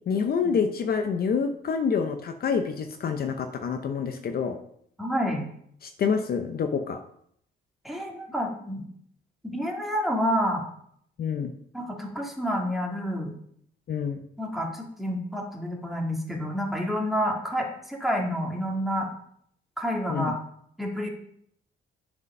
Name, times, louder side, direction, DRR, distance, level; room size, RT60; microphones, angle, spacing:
voice 1, 0.1-4.6 5.8-7.0 11.2-11.5 13.9-14.2 20.1-20.3, left 6 dB, 55° left, 6 dB, 0.7 m, -27 dB
voice 2, 5.0-5.4 7.8-8.8 9.4-10.6 11.7-13.3 14.4-19.1 19.8-20.4 20.8-21.1, equal, ahead, -1 dB, 2.0 m, -29 dB
9.7 x 5.2 x 5.4 m, 0.68 s
cardioid pair, 120°, 19 cm